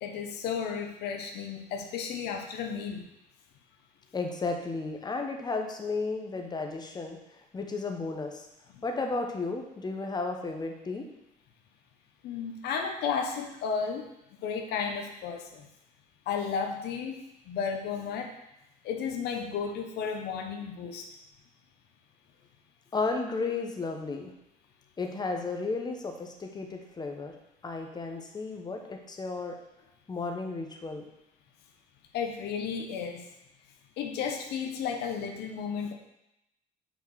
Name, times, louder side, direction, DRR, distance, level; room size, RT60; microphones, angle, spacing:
voice 1, 0.0-3.1 8.7-8.8 12.2-14.1 14.4-15.7 16.3-18.3 18.8-21.1 32.1-33.3 34.0-35.9, left 6 dB, 80° left, 4 dB, 0.9 m, -33 dB
voice 2, 4.1-7.2 7.5-8.4 8.8-11.0 22.9-24.3 25.0-27.3 27.6-29.6 30.1-31.0, left 3 dB, 25° left, 3 dB, 1.1 m, -33 dB
5.8 x 4.5 x 6.3 m, 0.86 s
cardioid pair, 110°, 17 cm